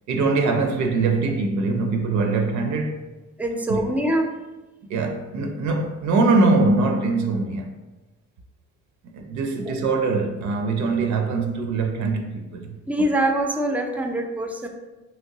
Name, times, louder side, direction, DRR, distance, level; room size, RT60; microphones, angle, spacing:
voice 1, 0.1-3.0 3.7-3.9 4.9-7.7 9.1-13.1, right 3 dB, 70° right, 0.5 m, -22 dB
voice 2, 3.4-4.3 9.6-9.9 12.9-14.7, right 1 dB, 5° right, 0.4 m, -24 dB
2.9 x 2.9 x 2.7 m
cardioid pair, 90°, 30 cm